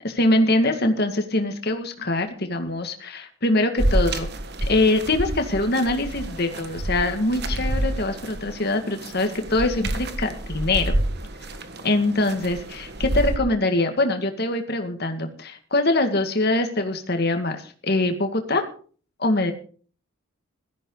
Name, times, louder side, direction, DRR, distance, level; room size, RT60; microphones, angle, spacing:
voice 1, 0.2-4.3 4.7-10.9 11.8-18.6 19.2-19.5, left 2 dB, 45° left, 6 dB, 2.0 m, -23 dB
sound 1, 3.8-13.4, right 1 dB, 50° right, 1.5 m, -28 dB
16.5 x 14.0 x 3.9 m, 0.43 s
head